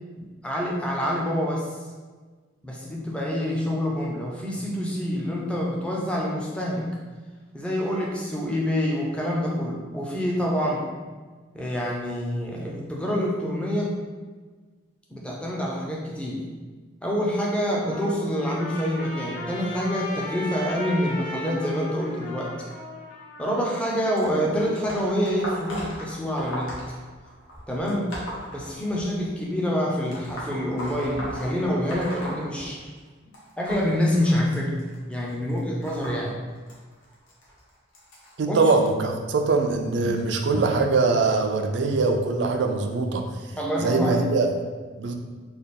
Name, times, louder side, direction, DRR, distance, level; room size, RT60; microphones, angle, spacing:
voice 1, 0.2-1.8 2.6-6.9 7.5-10.9 11.5-14.0 15.1-16.5 17.0-22.5 23.4-26.7 27.7-28.2 28.5-32.9 33.6-34.8 35.1-36.4 38.5-38.6 40.0-40.1 43.6-44.3, equal, 5° left, -3 dB, 0.5 m, -26 dB
Trumpet, 17.6-25.0, left 1 dB, 45° left, 0.7 m, -37 dB
sound 1, 24.2-29.3 30.1-33.1 33.3-38.7 39.5-39.7 40.8-40.9 41.8-41.9 42.6-42.7, equal, 85° left, 1.0 m, -38 dB
voice 2, 38.4-43.3 43.8-44.5 45.0-45.1, right 3 dB, 65° right, 4 dB, 0.4 m, -22 dB
3.3 x 2.3 x 4.1 m, 1.4 s
head